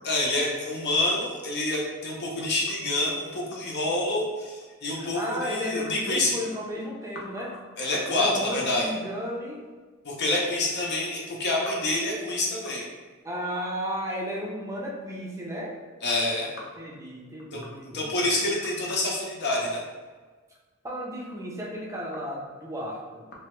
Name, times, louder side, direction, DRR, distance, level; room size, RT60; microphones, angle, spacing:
voice 1, 0.0-6.4 7.8-8.8 10.0-12.8 16.0-16.5 17.5-19.8, left 2 dB, 50° left, -3 dB, 0.6 m, -27 dB
voice 2, 5.0-7.5 8.1-9.6 13.2-15.7 16.8-18.4 20.8-23.3, equal, 15° right, -3 dB, 0.5 m, -34 dB
3.3 x 2.2 x 2.9 m, 1.4 s
head